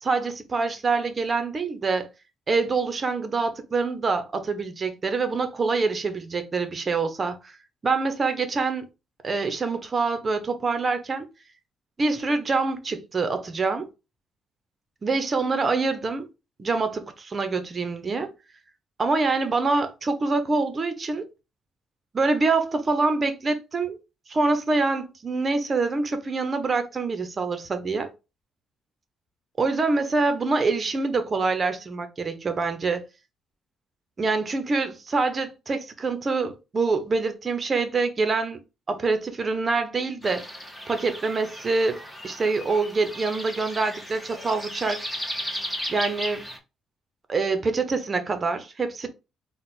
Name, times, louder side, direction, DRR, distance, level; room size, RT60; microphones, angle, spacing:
voice 1, 0.0-2.1 2.5-7.5 7.8-8.9 9.2-11.3 12.0-13.9 15.0-16.3 16.6-18.3 19.0-21.3 22.1-24.0 24.3-28.1 29.6-33.0 34.2-38.6 38.9-40.5 40.9-42.0 42.2-45.0 45.9-46.5 47.3-49.1, right 3 dB, 35° right, 1.0 m, -25 dB
sound 1, 40.2-46.6, equal, 5° left, 1.5 m, -35 dB
4.0 x 2.4 x 4.1 m
cardioid pair, 90°, 0 cm